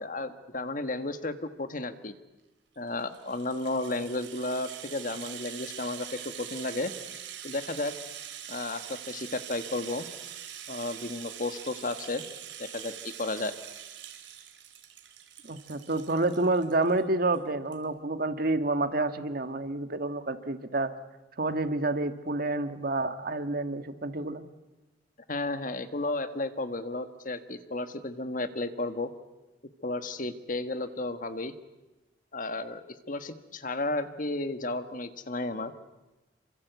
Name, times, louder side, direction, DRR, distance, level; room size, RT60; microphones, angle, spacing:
voice 1, 0.0-2.1 2.8-6.9 7.4-7.9 8.5-10.1 10.7-12.2 12.6-13.5 25.3-29.1 29.8-31.5 32.3-35.7, left 2 dB, 50° left, 10 dB, 1.6 m, -33 dB
Rattle (instrument), 2.9-17.0 17.3-17.4 17.7-17.8, right 10 dB, 90° right, 3.4 m, -43 dB
voice 2, 15.4-20.9 21.4-24.4, right 2 dB, 55° right, 9 dB, 1.6 m, -29 dB
28.0 x 24.5 x 8.2 m, 1.1 s
head